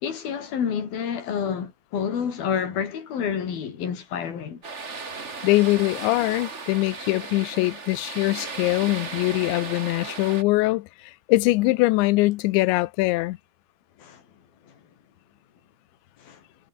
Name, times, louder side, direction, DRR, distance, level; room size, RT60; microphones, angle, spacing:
voice 1, 0.0-4.6 14.0-14.2 14.7-14.8 16.2-16.4, left 7 dB, 55° left, 5.3 m, -29 dB
sound 1, 4.6-10.4, right 4 dB, 45° right, 0.8 m, -36 dB
voice 2, 5.4-13.4, left 20 dB, 90° left, 3.1 m, -22 dB
omnidirectional pair, 5.1 m